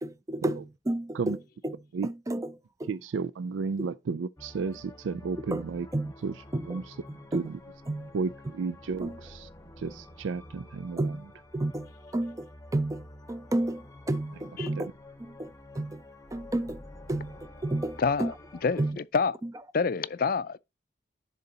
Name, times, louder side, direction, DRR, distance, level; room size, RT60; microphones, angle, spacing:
voice 1, 0.0-2.9 3.8-3.9 5.5-5.6 5.9-6.1 6.5-6.8 7.1-7.5 7.9-8.1 9.0-9.2 11.0-11.3 11.5-14.9 15.2-16.0 16.3-16.8 17.1-18.3 18.8-19.0 19.4-19.5, right 1 dB, 15° right, 0.4 m, -32 dB
voice 2, 2.9-5.9 6.2-6.3 6.7-6.9 7.3-7.6 8.1-9.5 9.8-11.1, right 5 dB, 90° right, 0.4 m, -32 dB
sound 1, 4.4-18.9, left 1 dB, 15° left, 0.8 m, -49 dB
voice 3, 18.0-18.3 18.6-18.8 19.1-19.4 19.7-20.6, left 5 dB, 50° left, 0.4 m, -26 dB
10.5 x 3.9 x 4.1 m
head